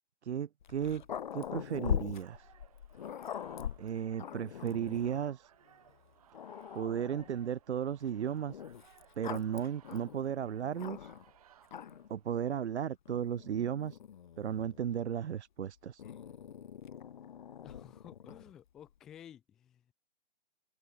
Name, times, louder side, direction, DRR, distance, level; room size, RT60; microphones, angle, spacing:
voice 1, 0.2-1.0 1.3-2.5 3.8-5.5 6.7-8.6 9.2-11.1 12.1-14.0 14.4-16.0, right 9 dB, 90° right, 0.9 m, -35 dB
Growling, 0.6-5.2 5.9-6.0 6.3-7.4 8.5-11.3 11.6-12.2 13.1-14.9 16.0-18.5, left 9 dB, 45° left, 1.0 m, -42 dB
sound 1, 2.1-12.6, right 11 dB, 35° right, 2.1 m, -63 dB
voice 2, 17.6-19.9, left 9 dB, ahead, 0.5 m, -54 dB
hypercardioid pair, 175°, 33 cm